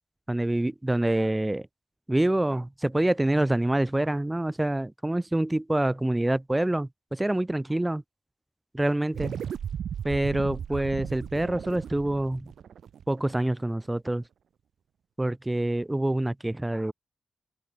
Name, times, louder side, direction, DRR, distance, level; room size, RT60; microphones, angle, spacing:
voice 1, 0.3-1.7 2.1-8.0 8.7-9.3 10.0-12.5 13.1-14.2 15.2-16.9, right 1 dB, 15° right, 0.4 m, -26 dB
sound 1, 9.1-13.8, right 8 dB, 75° right, 2.5 m, -36 dB
supercardioid pair, 40°, 0 cm